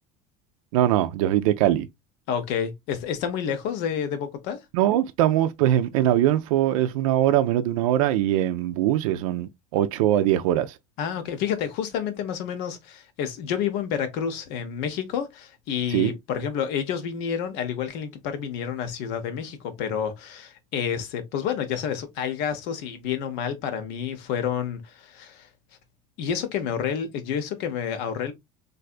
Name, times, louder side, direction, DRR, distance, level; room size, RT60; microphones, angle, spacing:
voice 1, 0.7-1.9 4.7-10.8 15.9-16.1, right 12 dB, 85° right, 0.4 m, -22 dB
voice 2, 2.3-4.6 11.0-25.5 26.2-28.3, left 8 dB, 70° left, 0.9 m, -29 dB
3.3 x 2.6 x 2.4 m
supercardioid pair, 110°, 17 cm